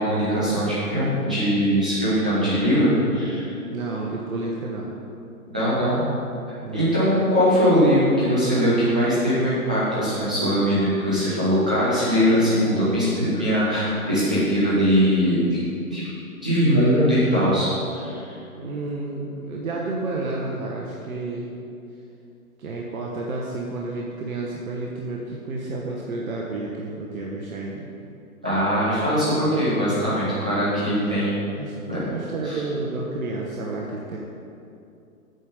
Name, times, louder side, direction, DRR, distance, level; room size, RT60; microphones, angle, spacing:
voice 1, 0.0-3.5 5.5-6.0 6.7-15.4 15.9-16.0 16.4-18.2 28.4-31.5 31.9-32.0 32.4-32.6, equal, 5° right, -11 dB, 0.3 m, -21 dB
voice 2, 3.7-4.9 6.6-6.9 18.5-21.5 22.6-27.9 31.5-31.7 32.0-34.2, right 2 dB, 65° right, -2 dB, 1.3 m, -30 dB
8.5 x 5.1 x 6.6 m, 2.6 s
hypercardioid pair, 130°, 44 cm